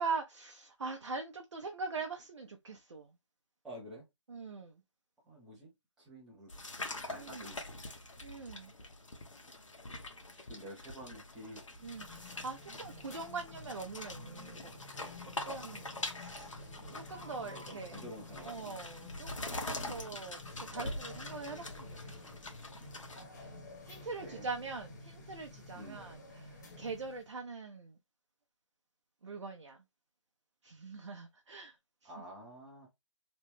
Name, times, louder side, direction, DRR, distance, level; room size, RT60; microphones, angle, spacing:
voice 1, 0.0-3.1 4.3-4.8 7.1-7.4 8.2-8.7 11.8-15.1 15.4-16.5 16.9-18.0 18.4-22.4 23.4-23.5 23.9-28.0 29.2-29.8 30.6-31.7 32.0-32.1, right 4 dB, 65° right, 0.6 m, -42 dB
voice 2, 3.6-4.1 5.2-5.7 6.0-6.6 7.0-7.7 10.3-11.7 17.4-18.8 23.9-24.5 25.7-26.0 32.0-32.9, equal, ahead, 0.4 m, -49 dB
sound 1, 6.5-23.2, left 2 dB, 75° left, 1.0 m, -44 dB
sound 2, 11.7-27.3, left 2 dB, 35° left, 0.9 m, -51 dB
3.0 x 2.1 x 3.2 m
figure-of-eight pair, 155°, 16 cm